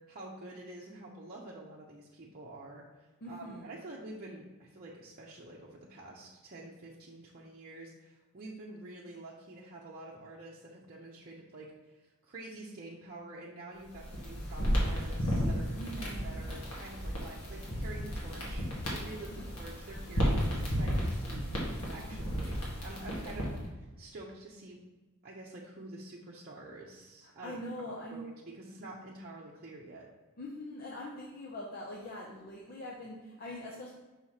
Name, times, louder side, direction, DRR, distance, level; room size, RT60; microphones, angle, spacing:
voice 1, 0.1-24.8 25.2-30.1, right 2 dB, 45° right, -4 dB, 0.7 m, -48 dB
voice 2, 3.2-3.7 15.8-16.4 19.4-19.5 22.1-22.5 23.2-23.5 27.4-28.2 30.4-33.9, left 1 dB, 45° left, -2 dB, 0.7 m, -43 dB
sound 1, 13.8-23.6, equal, 75° left, 1.6 m, -33 dB
5.6 x 3.1 x 5.6 m, 1.2 s
head